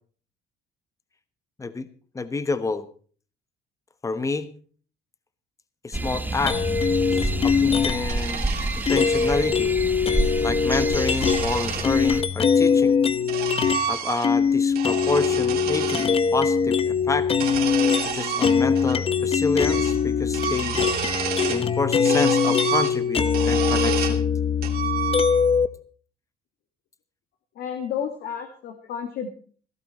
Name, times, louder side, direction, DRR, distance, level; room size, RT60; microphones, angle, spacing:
voice 1, 2.1-2.8 4.0-4.5 5.8-6.6 7.2-8.5 8.9-9.7 10.4-13.0 13.9-17.3 18.0-20.9 21.5-24.2, left 3 dB, 20° left, 13 dB, 1.2 m, -28 dB
sound 1, 5.9-12.2, right 2 dB, 10° right, 1.2 m, -29 dB
sound 2, 6.5-8.2 8.9-13.9 14.2-25.7, left 6 dB, 35° left, 0.9 m, -22 dB
sound 3, 8.0-9.4 10.6-11.9 12.8-14.4 14.7-16.1 17.3-19.0 19.2-19.3 19.7-20.0 20.3-21.7 22.0-24.2 24.6-25.6, right 8 dB, 65° right, 3.0 m, -30 dB
voice 2, 27.6-29.3, left 8 dB, 75° left, 5 dB, 2.0 m, -31 dB
16.0 x 13.0 x 4.2 m, 0.43 s
cardioid pair, 110°, 17 cm